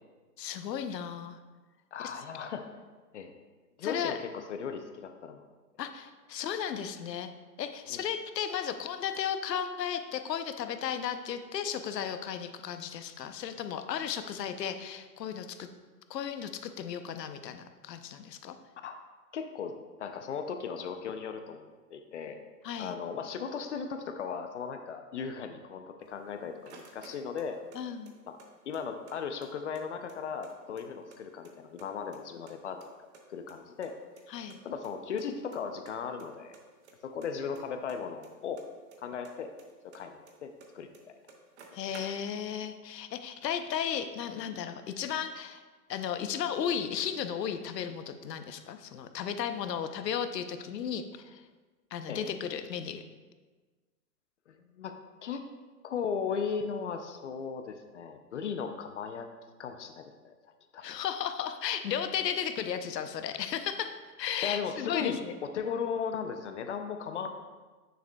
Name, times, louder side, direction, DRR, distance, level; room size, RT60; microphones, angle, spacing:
voice 1, 0.4-1.4 2.0-2.1 3.8-4.1 5.8-7.3 7.6-15.7 16.1-18.5 22.6-22.9 27.7-28.2 34.3-34.6 41.7-45.6 45.9-51.4 51.9-53.0 60.8-65.4, left 8 dB, 85° left, 9 dB, 0.8 m, -35 dB
voice 2, 1.9-2.7 3.1-3.3 3.8-5.4 7.9-8.0 18.8-19.0 19.3-19.7 20.0-21.7 21.9-22.4 22.8-27.6 28.3-28.4 28.7-32.8 33.3-33.9 34.6-36.5 37.0-38.6 39.0-39.5 39.8-40.5 40.7-40.9 52.1-52.3 54.5-55.0 55.2-55.4 55.8-59.3 59.6-60.3 60.7-60.9 64.4-67.3, left 6 dB, 50° left, 7 dB, 0.5 m, -37 dB
sound 1, 26.1-27.8 28.1-29.2 29.4-29.5 29.8-31.2 31.4-32.2 32.5-33.9 34.2-34.3 34.5-34.6 34.8-34.9 35.2-35.6 35.9-36.3 36.5-39.0 39.2-40.7 40.9-41.0 41.3-42.5, right 4 dB, 45° right, 1.0 m, -53 dB
9.1 x 6.6 x 2.2 m, 1.3 s
hypercardioid pair, 165°, 48 cm